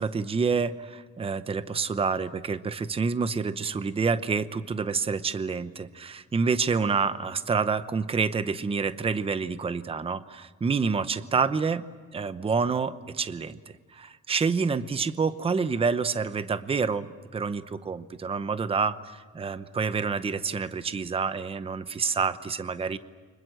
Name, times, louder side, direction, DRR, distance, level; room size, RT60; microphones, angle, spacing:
voice 1, 0.0-11.8 12.1-13.6 13.9-23.0, right 5 dB, 20° right, 12 dB, 0.7 m, -28 dB
29.0 x 25.5 x 7.7 m, 1.5 s
cardioid pair, 170°, 29 cm